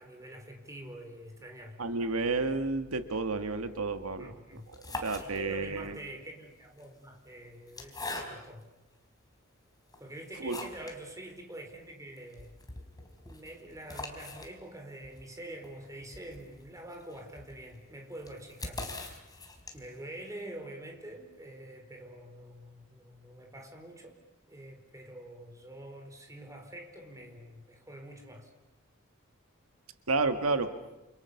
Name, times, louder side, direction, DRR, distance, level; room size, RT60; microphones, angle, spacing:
voice 1, 0.0-1.8 4.2-4.7 5.2-8.7 10.0-12.5 13.2-18.9 19.7-24.1 24.5-28.5, right 1 dB, 15° right, 4 dB, 4.6 m, -46 dB
voice 2, 1.8-4.3 5.0-5.9 10.4-10.7 30.1-30.7, right 3 dB, 90° right, 9 dB, 1.7 m, -31 dB
sound 1, 4.6-5.8 6.6-8.7 9.3-9.4 9.9-11.0 11.3-11.4 11.7-11.8 12.2-20.0, left 2 dB, 20° left, 4.1 m, -43 dB
28.5 x 28.5 x 7.0 m, 1.0 s
head